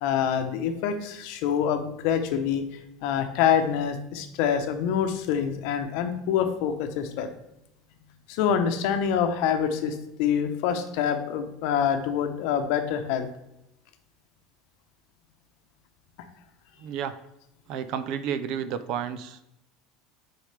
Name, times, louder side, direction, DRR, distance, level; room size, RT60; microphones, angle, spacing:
voice 1, 0.0-2.6 3.0-7.3 8.3-13.3, left 8 dB, 55° left, 7 dB, 0.9 m, -26 dB
voice 2, 16.8-17.1 17.7-19.5, right 8 dB, 45° right, 12 dB, 0.5 m, -31 dB
9.7 x 4.8 x 3.3 m, 0.87 s
cardioid pair, 175°, 0 cm